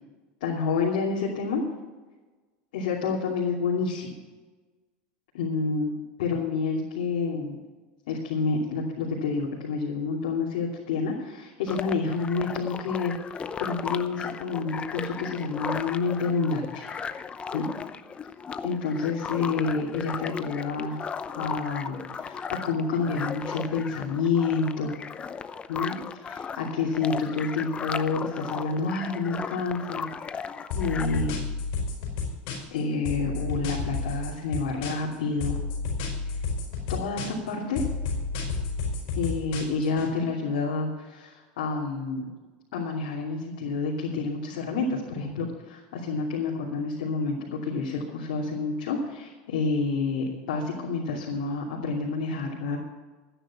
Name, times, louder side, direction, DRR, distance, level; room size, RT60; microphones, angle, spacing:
voice 1, 0.4-1.6 2.7-4.2 5.3-5.9 6.2-7.6 8.1-16.9 17.5-17.7 18.6-21.0 21.3-25.0 25.7-30.1 30.3-30.5 30.7-31.5 32.7-35.6 36.3-36.4 36.9-37.8 39.2-42.2 42.7-52.8, left 4 dB, 80° left, -4 dB, 2.9 m, -29 dB
sound 1, 11.7-31.3, left 6 dB, 25° left, 0.7 m, -36 dB
sound 2, 30.7-32.8 33.1-35.1 35.4-37.5 37.8-40.1, left 4 dB, 65° left, 4.6 m, -31 dB
13.5 x 10.0 x 6.0 m, 1.3 s
supercardioid pair, 115°, 5 cm